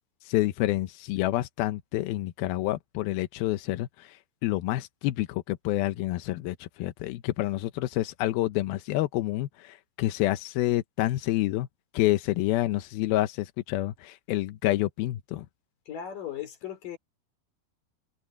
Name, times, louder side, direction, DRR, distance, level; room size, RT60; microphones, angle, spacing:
voice 1, 0.2-11.7 11.9-15.5, left 16 dB, 75° left, 2.4 m, -28 dB
voice 2, 15.9-17.0, left 10 dB, 50° left, 5.0 m, -37 dB
omnidirectional pair, 5.0 m